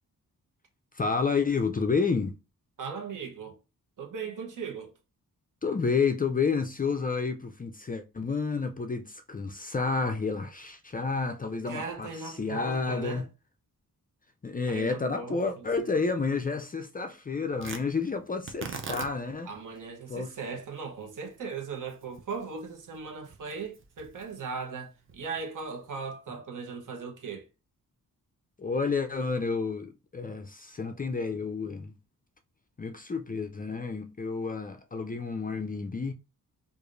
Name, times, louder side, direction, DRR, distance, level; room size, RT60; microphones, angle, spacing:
voice 1, 0.9-2.4 5.6-13.3 14.4-19.5 20.1-20.3 28.6-31.9 32.8-36.1, left 4 dB, 25° left, 0.4 m, -30 dB
voice 2, 2.8-3.6 4.0-4.9 11.6-13.3 14.7-15.7 19.4-27.4, right 5 dB, 55° right, 1.0 m, -38 dB
Tearing, 17.6-25.9, right 5 dB, 35° right, 0.6 m, -45 dB
4.8 x 2.5 x 2.5 m
wide cardioid pair, 115°, 36 cm